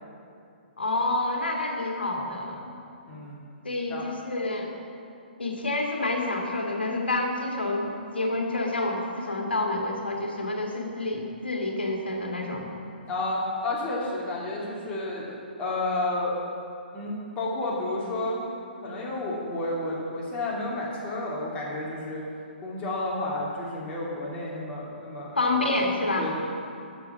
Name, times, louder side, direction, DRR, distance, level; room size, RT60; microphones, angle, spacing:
voice 1, 0.8-2.7 3.6-4.8 5.4-7.8 8.1-12.7 25.4-26.3, left 2 dB, 75° left, 1 dB, 2.1 m, -28 dB
voice 2, 3.1-3.4 3.9-4.1 13.1-15.3 15.6-16.3 16.9-18.5 18.8-22.2 22.6-25.4 26.2-26.4, left 2 dB, 20° left, -5 dB, 2.8 m, -31 dB
12.5 x 7.0 x 7.1 m, 2.5 s
figure-of-eight pair, 125°, 6 cm